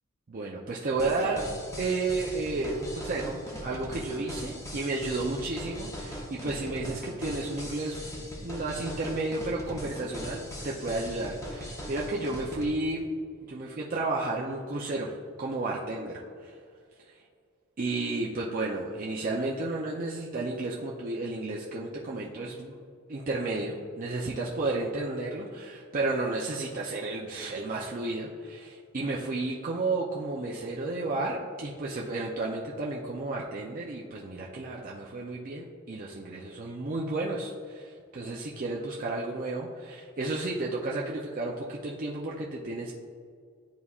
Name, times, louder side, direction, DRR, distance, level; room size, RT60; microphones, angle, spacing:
voice 1, 0.3-1.4 1.8-8.0 8.4-13.0 13.4-16.6 17.8-22.8 23.1-42.9, right 2 dB, 40° right, -3 dB, 0.5 m, -32 dB
sound 1, 1.0-12.7, equal, 15° left, 0.8 m, -40 dB
10.5 x 4.1 x 2.4 m, 2.2 s
head